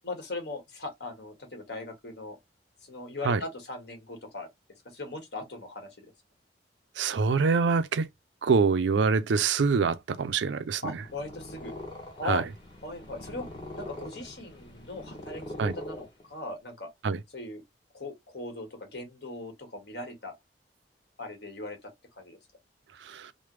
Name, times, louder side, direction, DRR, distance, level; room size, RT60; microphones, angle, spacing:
voice 1, 0.0-2.4 2.8-4.5 4.8-6.1 10.8-11.8 12.1-12.4 12.8-13.5 13.8-15.4 15.8-16.9 17.3-17.6 17.9-20.3 21.2-21.9 22.2-22.4, left 2 dB, 65° left, 1.4 m, -39 dB
voice 2, 7.0-8.1 8.4-10.8 12.3-12.4 15.6-15.7 17.0-17.2 23.0-23.3, right 5 dB, 85° right, 0.4 m, -25 dB
Purr, 10.9-16.6, left 1 dB, 25° left, 1.2 m, -43 dB
3.3 x 2.1 x 3.0 m
head